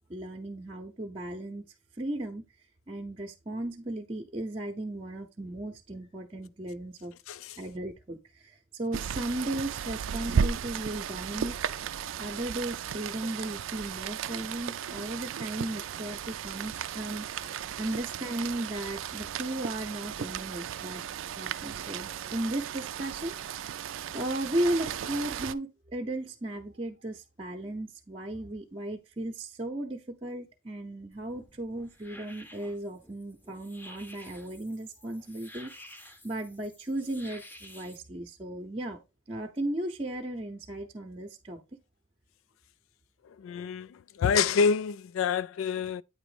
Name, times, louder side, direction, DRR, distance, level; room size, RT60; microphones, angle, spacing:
voice 1, 0.1-1.7 2.0-2.5 2.9-7.1 7.6-11.6 12.2-17.3 17.8-21.0 21.4-23.8 24.1-35.7 36.2-39.0 39.3-41.6, right 1 dB, 30° right, 0.7 m, -35 dB
voice 2, 7.3-7.6 43.3-46.0, left 6 dB, 90° left, 0.3 m, -27 dB
Rain, 8.9-25.5, right 7 dB, 75° right, 0.4 m, -35 dB
sound 1, 31.1-38.0, left 1 dB, 10° left, 0.7 m, -51 dB
8.9 x 3.0 x 4.9 m
head